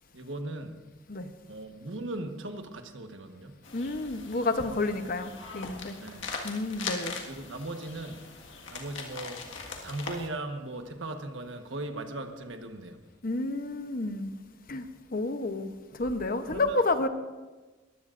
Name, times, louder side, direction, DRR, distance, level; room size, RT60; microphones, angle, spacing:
voice 1, 0.1-0.7 1.5-3.6 6.0-6.3 7.2-8.2 8.7-9.4 9.8-13.0 16.5-16.8, right 2 dB, 70° right, 5 dB, 1.3 m, -38 dB
sound 1, 3.6-10.3, left 4 dB, 70° left, 1.7 m, -41 dB
voice 2, 3.7-6.0 6.4-7.1 13.2-14.3 14.7-14.9 15.1-17.1, left 2 dB, 45° left, 8 dB, 0.9 m, -30 dB
21.5 x 15.0 x 2.6 m, 1.2 s
head